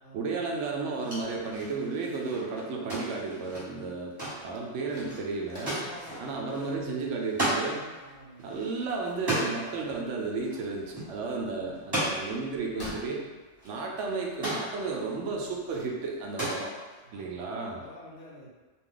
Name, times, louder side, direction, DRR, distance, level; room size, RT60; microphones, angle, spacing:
voice 1, 0.1-4.1 4.4-5.8 6.2-7.8 8.4-13.2 13.6-16.7 17.1-17.8, right 4 dB, 80° right, 0 dB, 0.9 m, -33 dB
sound 1, 0.9-7.7 8.0-8.1 8.4-9.7 10.4-10.7 11.0-11.1 11.7-12.5 13.2-13.3 13.6-14.7 15.5-15.9 16.2-17.0, right 1 dB, 20° right, 1.2 m, -34 dB
sound 2, 3.9-16.3, equal, 45° left, 0.9 m, -52 dB
voice 2, 5.7-6.6 8.0-8.5 11.4-11.8 17.0-18.6, equal, 75° left, -4 dB, 1.1 m, -49 dB
2.7 x 2.2 x 3.6 m, 1.3 s
omnidirectional pair, 1.2 m